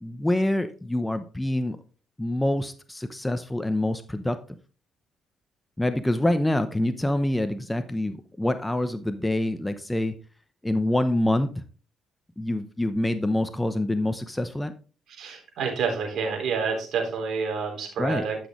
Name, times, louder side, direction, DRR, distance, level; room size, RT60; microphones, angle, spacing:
voice 1, 0.0-1.8 2.2-4.4 5.8-10.1 10.6-11.5 12.4-14.7 18.0-18.2, left 1 dB, 10° left, 9 dB, 0.8 m, -26 dB
voice 2, 15.2-18.4, right 5 dB, 70° right, 2 dB, 3.5 m, -28 dB
12.0 x 6.2 x 3.1 m, 0.37 s
cardioid pair, 90°, 0 cm